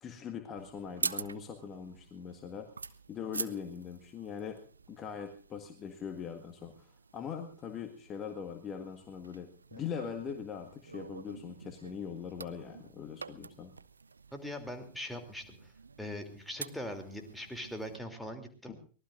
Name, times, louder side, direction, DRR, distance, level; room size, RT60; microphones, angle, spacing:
voice 1, 0.0-2.7 3.1-4.6 4.9-13.7 18.7-18.8, left 7 dB, 25° left, 5 dB, 1.7 m, -41 dB
sound 1, 0.6-18.0, right 4 dB, 75° right, 0.6 m, -46 dB
voice 2, 14.3-15.7 16.0-18.7, equal, 5° left, 4 dB, 3.1 m, -41 dB
24.0 x 18.5 x 2.6 m, 0.40 s
figure-of-eight pair, 90°, 0 cm